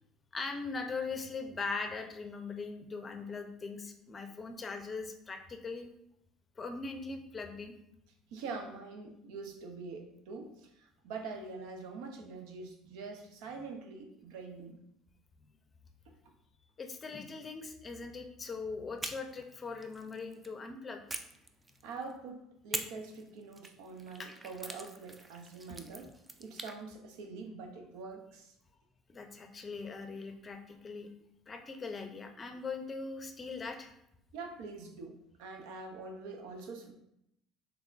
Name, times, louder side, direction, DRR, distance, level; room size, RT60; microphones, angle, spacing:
voice 1, 0.3-5.9 6.6-7.7 16.8-21.1 24.2-24.3 29.1-31.1 31.5-33.9, left 4 dB, 30° left, 5 dB, 0.5 m, -40 dB
voice 2, 8.3-14.8 16.2-16.3 21.8-26.1 26.4-28.5 34.3-36.9, right 4 dB, 75° right, 4 dB, 0.6 m, -44 dB
sound 1, 19.0-20.5 21.1-22.1 22.7-26.8, right 2 dB, 20° right, 0.4 m, -44 dB
3.6 x 3.4 x 2.5 m, 0.78 s
supercardioid pair, 75°, 0 cm